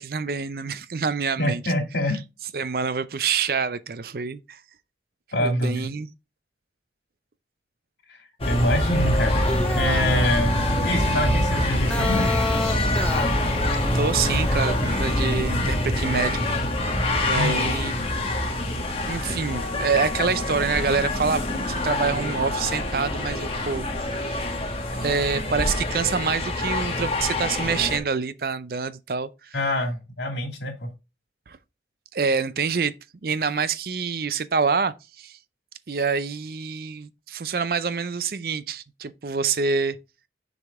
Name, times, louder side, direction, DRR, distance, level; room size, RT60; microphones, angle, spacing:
voice 1, 0.0-1.7 2.5-4.6 5.4-6.1 13.9-16.4 17.3-18.3 19.1-23.9 24.1-24.3 25.0-29.6 31.5-31.6 32.1-32.9 33.2-35.4 35.9-40.0, right 5 dB, 55° right, 0.5 m, -26 dB
voice 2, 1.4-2.2 5.3-5.9 8.1-8.2 8.4-9.4 9.7-12.3 17.3-17.7 29.5-30.9, left 1 dB, 80° left, 2.4 m, -25 dB
sound 1, 8.4-28.0, left 1 dB, 30° left, 1.3 m, -25 dB
sound 2, 9.3-14.8, left 1 dB, 5° left, 0.6 m, -31 dB
6.6 x 5.1 x 3.5 m
head